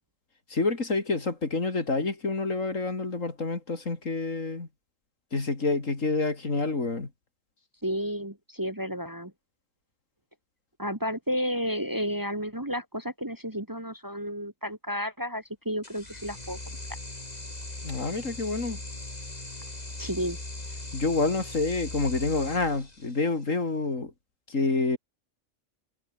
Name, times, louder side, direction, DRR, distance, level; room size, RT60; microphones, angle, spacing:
voice 1, 0.5-4.7 5.3-7.1 17.8-18.8 20.9-24.1 24.5-25.0, left 3 dB, 75° left, 3.8 m, -28 dB
voice 2, 7.8-9.3 10.8-16.6 20.0-20.4, equal, 15° right, 1.6 m, -32 dB
sound 1, 15.8-23.4, left 2 dB, 30° left, 3.5 m, -40 dB
omnidirectional pair, 1.3 m